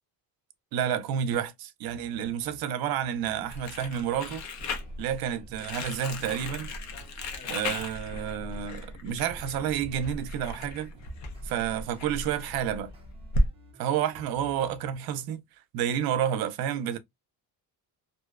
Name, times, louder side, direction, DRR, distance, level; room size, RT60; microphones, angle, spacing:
voice 1, 0.7-4.5 5.0-6.7 7.5-10.9 11.4-12.9 13.8-15.4 15.7-17.0, right 9 dB, 70° right, 0.5 m, -30 dB
sound 1, 1.8-2.6 3.0-9.0 9.3-15.0, left 1 dB, 15° right, 0.4 m, -53 dB
Crumpling crinkling, 3.5-13.5, left 1 dB, 45° left, 0.6 m, -35 dB
sound 2, 5.5-12.6, equal, 80° left, 0.8 m, -50 dB
2.6 x 2.1 x 2.3 m
cardioid pair, 175°, 38 cm